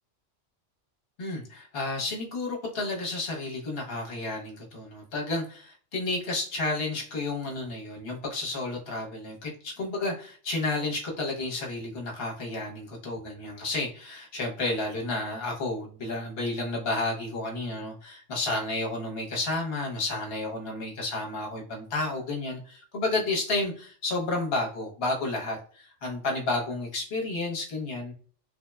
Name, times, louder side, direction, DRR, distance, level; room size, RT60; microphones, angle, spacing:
voice 1, 1.2-28.1, left 2 dB, 55° left, -1 dB, 1.0 m, -31 dB
3.2 x 2.1 x 2.2 m, 0.43 s
omnidirectional pair, 1.3 m